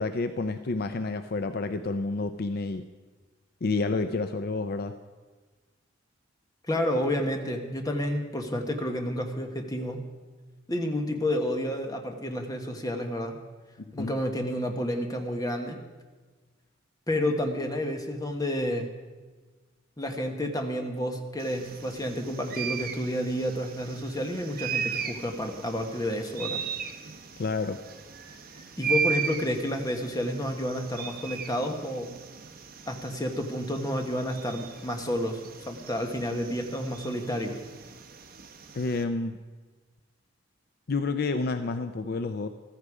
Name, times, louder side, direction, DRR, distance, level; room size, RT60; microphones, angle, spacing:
voice 1, 0.0-2.9 3.6-5.0 14.0-14.1 27.4-27.8 38.7-39.4 40.9-42.5, left 3 dB, 55° left, 10 dB, 0.5 m, -29 dB
voice 2, 6.7-10.1 10.7-13.4 13.9-15.8 17.1-18.9 20.0-26.6 28.8-32.1 32.9-35.4 35.7-37.6, left 1 dB, 20° left, 4 dB, 1.4 m, -30 dB
sound 1, 21.4-39.0, right 6 dB, 50° right, 1.2 m, -37 dB
15.0 x 14.0 x 4.9 m, 1.3 s
head